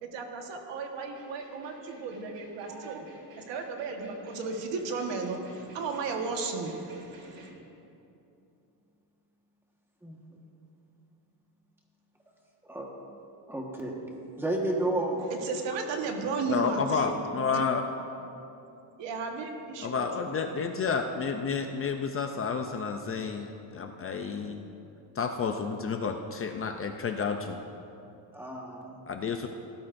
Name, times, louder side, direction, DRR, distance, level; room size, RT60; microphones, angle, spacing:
voice 1, 0.0-3.1 3.4-7.5 15.3-17.6 19.0-20.0 20.3-20.5 24.2-24.6, right 4 dB, 75° right, 3 dB, 1.5 m, -35 dB
sound 1, 1.0-7.5, right 1 dB, 55° right, 2.8 m, -52 dB
voice 2, 13.5-14.0 14.4-15.2 16.4-16.6 28.3-29.0, right 2 dB, 5° right, -1 dB, 1.4 m, -31 dB
voice 3, 16.5-17.8 19.8-24.6 25.2-27.6 29.1-29.5, left 5 dB, 30° left, 5 dB, 0.5 m, -30 dB
17.0 x 12.5 x 2.6 m, 2.8 s
cardioid pair, 155°, 44 cm